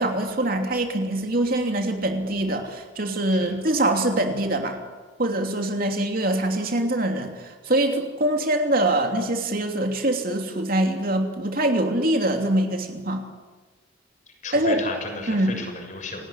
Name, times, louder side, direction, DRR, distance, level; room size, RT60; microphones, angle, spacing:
voice 1, 0.0-4.8 5.2-13.2 14.5-14.8 15.3-15.5, right 1 dB, 50° right, 4 dB, 3.0 m, -24 dB
voice 2, 14.3-16.3, left 2 dB, 40° left, 3 dB, 6.9 m, -34 dB
29.0 x 18.5 x 10.0 m, 1.3 s
head